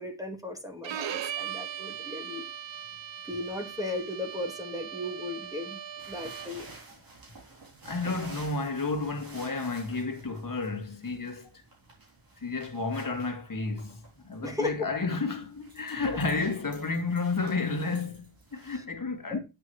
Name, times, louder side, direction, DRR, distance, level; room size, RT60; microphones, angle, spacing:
voice 1, 0.0-2.4 3.3-5.8 6.1-6.7 14.4-14.9 18.7-18.8 19.3-19.4, left 2 dB, 5° right, 1.9 m, -36 dB
Bowed string instrument, 0.8-6.7, right 9 dB, 65° right, 0.6 m, -39 dB
sound 1, 6.0-18.8, right 3 dB, 45° right, 3.6 m, -51 dB
voice 2, 7.8-11.5 12.4-19.4, left 3 dB, 40° left, 2.3 m, -31 dB
9.7 x 6.7 x 3.1 m
wide cardioid pair, 115°, 48 cm